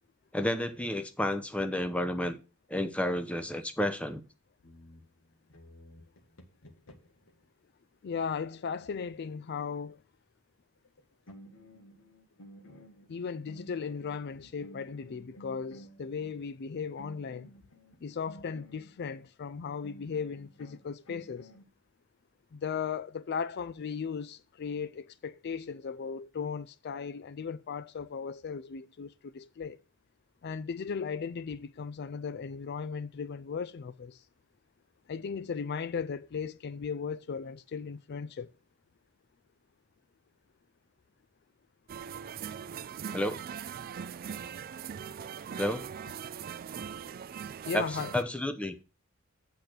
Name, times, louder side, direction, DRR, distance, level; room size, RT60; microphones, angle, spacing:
voice 1, 0.3-2.4 2.7-4.2 43.1-43.4 45.6-45.8 47.7-47.9 48.1-48.7, left 1 dB, 5° left, 0.7 m, -31 dB
sound 1, 4.6-7.3 10.8-11.0 11.3-16.4 17.0-19.3 19.8-21.6, equal, 85° left, 1.6 m, -54 dB
voice 2, 8.0-10.0 13.1-17.5 18.0-21.5 22.5-29.8 30.4-34.2 35.1-38.5 47.7-48.1, left 6 dB, 50° left, 0.4 m, -37 dB
sound 2, 41.9-48.2, right 8 dB, 45° right, 0.3 m, -40 dB
8.3 x 4.4 x 6.5 m
head